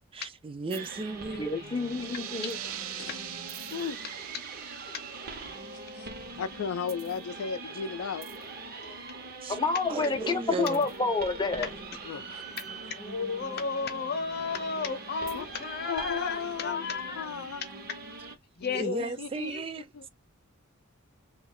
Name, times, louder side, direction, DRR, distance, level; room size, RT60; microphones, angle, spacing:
voice 1, 0.1-1.5 9.4-9.6 9.9-10.8 18.7-19.9, right 4 dB, 25° right, 0.3 m, -35 dB
sound 1, 0.7-18.4, right 3 dB, 45° right, 0.7 m, -42 dB
voice 2, 1.4-2.6 9.5-11.7, left 4 dB, 20° left, 0.5 m, -28 dB
sound 2, 1.7-7.1, right 11 dB, 90° right, 0.5 m, -43 dB
voice 3, 3.7-4.2 5.9-6.1 6.4-8.3 12.0-12.4 15.3-15.5 15.9-16.8 17.1-17.6 18.6-19.5 19.9-20.1, left 6 dB, 85° left, 0.4 m, -35 dB
voice 4, 13.0-17.3 18.6-19.2 19.5-19.6, left 5 dB, 50° left, 0.8 m, -33 dB
3.0 x 2.3 x 3.6 m
head